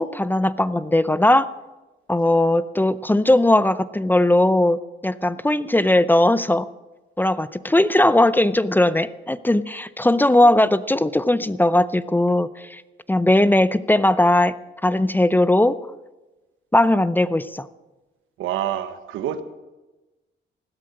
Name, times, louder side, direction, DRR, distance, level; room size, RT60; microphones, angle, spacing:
voice 1, 0.0-1.5 2.1-6.7 7.2-12.8 13.1-14.6 14.8-15.8 16.7-17.7, left 1 dB, 10° left, 16 dB, 0.5 m, -18 dB
voice 2, 18.4-19.4, right 10 dB, 90° right, 11 dB, 1.2 m, -27 dB
16.0 x 12.5 x 6.4 m, 1.1 s
cardioid pair, 90°, 20 cm